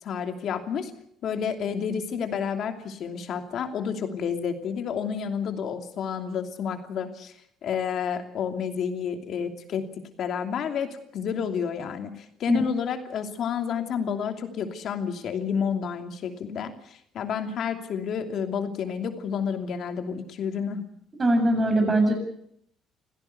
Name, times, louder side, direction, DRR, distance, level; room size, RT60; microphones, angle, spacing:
voice 1, 0.0-0.9 1.2-7.3 7.6-9.9 10.2-20.8, left 7 dB, 60° left, 6 dB, 2.8 m, -30 dB
voice 2, 21.2-22.1, right 1 dB, 30° right, 5 dB, 7.5 m, -21 dB
26.5 x 16.5 x 7.0 m, 0.70 s
cardioid pair, 100°, 0 cm